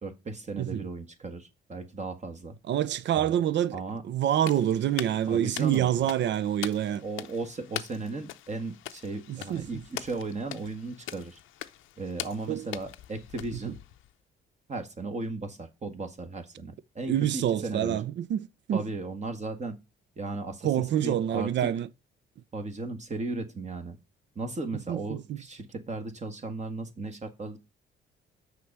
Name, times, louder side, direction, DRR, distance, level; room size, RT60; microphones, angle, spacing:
voice 1, 0.0-2.6 3.2-3.4 3.7-4.0 5.3-6.1 7.0-11.4 12.0-13.9 14.7-18.0 18.7-19.8 20.2-21.8 22.5-24.0 24.3-27.6, right 3 dB, 35° right, 1.6 m, -36 dB
voice 2, 2.7-7.0 9.3-9.7 12.5-12.7 17.1-18.9 20.6-21.9 24.9-25.4, right 11 dB, 65° right, 0.6 m, -27 dB
sound 1, 4.4-14.1, left 14 dB, 85° left, 0.6 m, -42 dB
6.6 x 4.9 x 6.6 m
cardioid pair, 90°, 20 cm